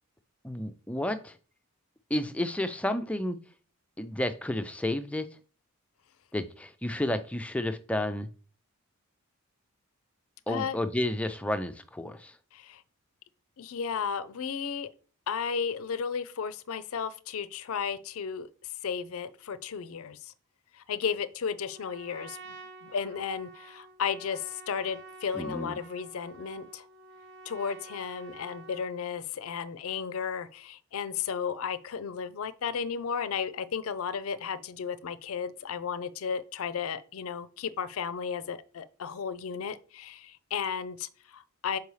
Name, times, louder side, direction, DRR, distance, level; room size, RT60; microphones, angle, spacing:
voice 1, 0.4-1.4 2.1-3.4 4.0-5.4 6.3-8.3 10.5-12.4 25.3-25.8, left 1 dB, 5° left, 0.4 m, -31 dB
voice 2, 13.6-14.9 15.3-18.5 18.8-20.2 20.7-22.5 22.8-26.8 27.5-41.8, left 6 dB, 70° left, 0.5 m, -34 dB
Trumpet, 21.7-29.0, right 3 dB, 50° right, 0.8 m, -49 dB
6.8 x 4.7 x 3.1 m
head